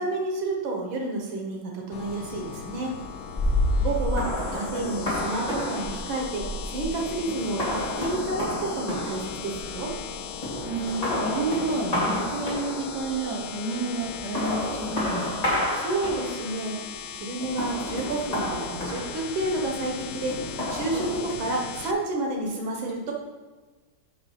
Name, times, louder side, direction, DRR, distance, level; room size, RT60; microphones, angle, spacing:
voice 1, 0.0-2.9 3.8-9.9 15.7-16.8 17.1-20.4 20.7-23.1, right 2 dB, 85° right, 0 dB, 2.0 m, -30 dB
sound 1, 1.9-21.9, left 7 dB, 75° left, 0.8 m, -38 dB
sound 2, 3.4-10.1 10.4-13.1 14.0-16.6 17.4-19.6 20.3-21.4, left 1 dB, 20° left, 2.3 m, -30 dB
voice 2, 10.6-15.6, right 2 dB, 60° right, -1 dB, 1.9 m, -30 dB
6.7 x 5.4 x 5.7 m, 1.3 s
omnidirectional pair, 2.1 m